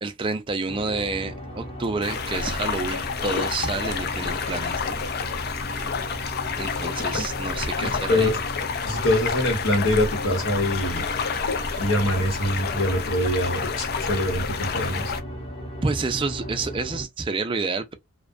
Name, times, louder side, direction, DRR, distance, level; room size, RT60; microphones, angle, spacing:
voice 1, 0.0-5.0 6.6-8.3 15.8-17.9, right 3 dB, 25° right, 0.4 m, -29 dB
sound 1, 0.7-17.0, equal, 30° left, 0.8 m, -36 dB
sound 2, 2.0-15.2, left 5 dB, 45° left, 0.3 m, -29 dB
voice 2, 7.8-8.4 8.8-11.0 11.8-15.1, left 1 dB, 85° left, 1.1 m, -24 dB
2.4 x 2.2 x 2.3 m
head